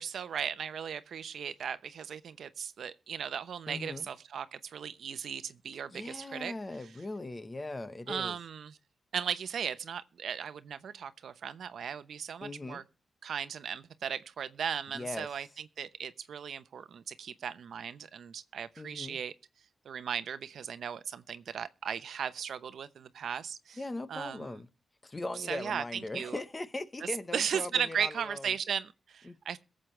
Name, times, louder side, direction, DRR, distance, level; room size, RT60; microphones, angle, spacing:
voice 1, 0.0-6.5 8.1-8.8 9.1-12.8 13.2-19.3 19.8-23.8 24.1-24.5 25.4-26.4 27.3-29.6, right 7 dB, 80° right, 0.9 m, -37 dB
voice 2, 3.7-4.1 5.9-8.4 12.4-12.8 14.9-15.3 18.8-19.2 23.8-24.7 25.0-28.5 29.2-29.4, left 2 dB, 25° left, 1.0 m, -39 dB
22.0 x 7.6 x 3.3 m
wide cardioid pair, 115°, 0 cm